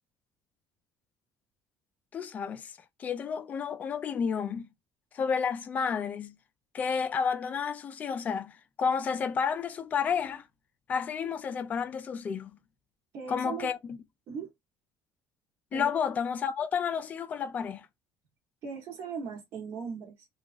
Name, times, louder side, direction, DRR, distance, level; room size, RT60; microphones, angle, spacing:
voice 1, 2.1-4.7 5.1-6.3 6.7-10.4 10.9-12.5 13.3-13.8 15.7-17.9, left 6 dB, 25° left, 0.3 m, -31 dB
voice 2, 13.1-13.7 14.3-14.5 15.7-15.9 18.6-20.3, right 6 dB, 50° right, 0.9 m, -38 dB
2.8 x 2.3 x 2.4 m
cardioid pair, 175°, 6 cm